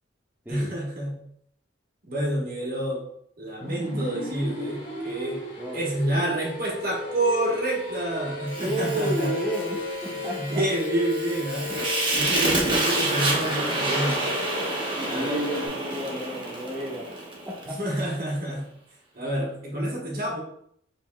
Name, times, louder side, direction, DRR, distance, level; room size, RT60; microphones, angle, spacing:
voice 1, 0.5-1.2 2.1-3.0 3.4-5.4 5.7-9.3 10.1-11.7 12.1-14.3 15.1-15.4 17.7-18.7 19.1-20.4, right 1 dB, 50° right, -2 dB, 1.2 m, -28 dB
sound 1, 3.6-15.7, left 3 dB, 85° left, 1.5 m, -35 dB
Fire, 8.5-17.7, right 2 dB, 25° right, 0.9 m, -28 dB
voice 2, 8.6-10.6 15.0-17.2 17.5-17.8, right 1 dB, 10° right, -3 dB, 0.5 m, -32 dB
5.1 x 3.4 x 2.2 m, 0.68 s
head